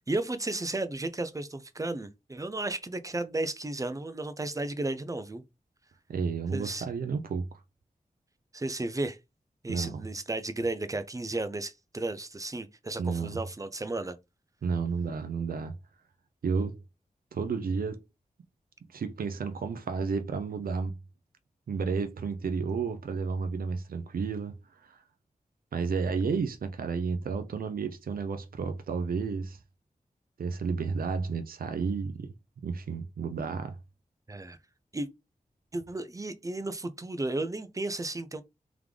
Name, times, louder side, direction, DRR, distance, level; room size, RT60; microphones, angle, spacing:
voice 1, 0.1-5.4 6.5-6.9 8.5-9.2 9.6-14.2 34.3-34.6 34.9-35.1 35.7-38.4, right 2 dB, 25° right, 0.5 m, -33 dB
voice 2, 6.1-7.6 9.7-10.0 13.0-13.4 14.6-15.7 16.4-16.8 17.3-18.0 18.9-20.9 21.7-25.0 25.7-29.6 30.4-32.3 32.6-33.8, right 5 dB, 80° right, 0.5 m, -32 dB
3.6 x 3.5 x 3.2 m
wide cardioid pair, 105°, 15 cm